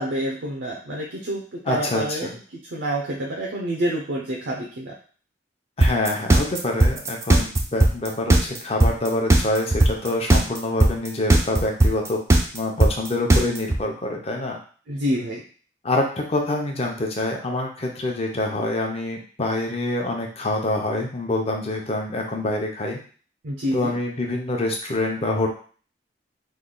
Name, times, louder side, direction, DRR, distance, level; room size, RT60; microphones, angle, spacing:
voice 1, 0.0-2.3 2.7-4.9 14.9-15.4 23.4-23.9, right 1 dB, 90° right, -2 dB, 0.6 m, -27 dB
voice 2, 1.6-2.3 5.8-12.2 12.5-14.6 15.8-23.0 23.7-25.5, left 2 dB, 35° left, 1 dB, 0.7 m, -26 dB
sound 1, 5.8-13.8, right 2 dB, 15° right, 0.3 m, -16 dB
3.2 x 2.3 x 3.8 m, 0.41 s
head